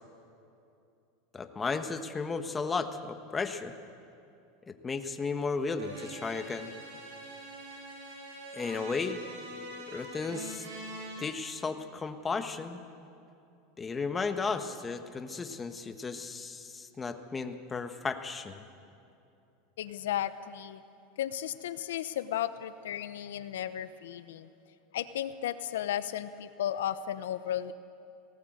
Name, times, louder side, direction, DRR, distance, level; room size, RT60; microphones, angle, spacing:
voice 1, 1.3-3.7 4.7-6.7 8.5-9.2 9.9-10.7 11.2-12.8 13.8-18.7, left 4 dB, 20° left, 8 dB, 1.3 m, -34 dB
sound 1, 5.8-11.3, right 1 dB, 75° right, 7.3 m, -44 dB
voice 2, 19.8-20.8 21.2-24.5 24.9-27.7, left 11 dB, 90° left, 13 dB, 0.8 m, -34 dB
18.5 x 18.5 x 8.0 m, 2.6 s
supercardioid pair, 125°, 0 cm